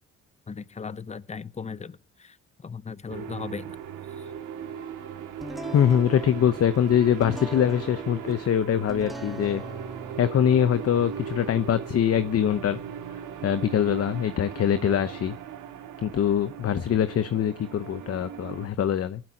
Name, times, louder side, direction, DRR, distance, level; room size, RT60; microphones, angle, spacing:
voice 1, 0.5-3.8 4.2-4.3, left 5 dB, 20° left, 17 dB, 0.7 m, -38 dB
sound 1, 3.1-18.7, right 8 dB, 80° right, 2.0 m, -38 dB
sound 2, 5.4-16.9, right 1 dB, ahead, 1.7 m, -43 dB
voice 2, 5.7-9.6 10.2-12.8 13.4-15.3 16.0-19.2, left 9 dB, 50° left, 11 dB, 0.9 m, -23 dB
18.0 x 12.0 x 2.9 m, 0.30 s
cardioid pair, 90°, 30 cm